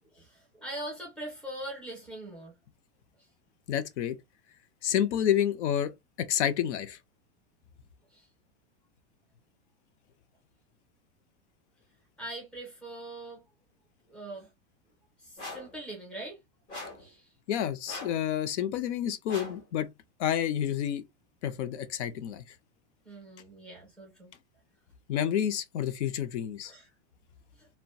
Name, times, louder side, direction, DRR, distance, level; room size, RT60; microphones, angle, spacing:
voice 1, 0.1-2.5 8.1-8.3 12.2-13.4 14.1-14.5 15.2-16.4 17.0-17.3 23.0-24.3 26.6-26.9 27.6-27.7, right 1 dB, 5° left, 0.6 m, -42 dB
voice 2, 3.7-4.2 4.8-5.9 6.2-7.0 17.5-19.9 20.2-21.0 21.4-22.4 25.1-26.7, left 10 dB, 80° left, 0.6 m, -29 dB
sound 1, 15.4-15.7 16.7-17.1 17.9-18.2 19.3-19.6, left 2 dB, 20° left, 0.9 m, -41 dB
2.6 x 2.1 x 2.2 m
supercardioid pair, 180°, 34 cm